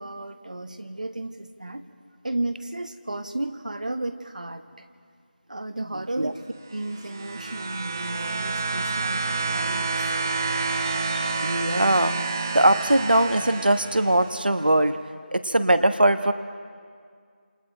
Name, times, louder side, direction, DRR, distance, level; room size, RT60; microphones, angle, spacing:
voice 1, 0.0-1.8 2.2-4.8 5.5-6.4 6.7-10.1, right 2 dB, 50° right, 9 dB, 1.2 m, -33 dB
voice 2, 5.9-6.3 10.4-15.0 15.3-16.3, right 1 dB, 65° right, 9 dB, 1.2 m, -22 dB
sound 1, 6.7-14.5 15.5-15.6, right 3 dB, 20° right, 0.9 m, -29 dB
28.0 x 27.5 x 4.5 m, 2.1 s
figure-of-eight pair, 170°, 5 cm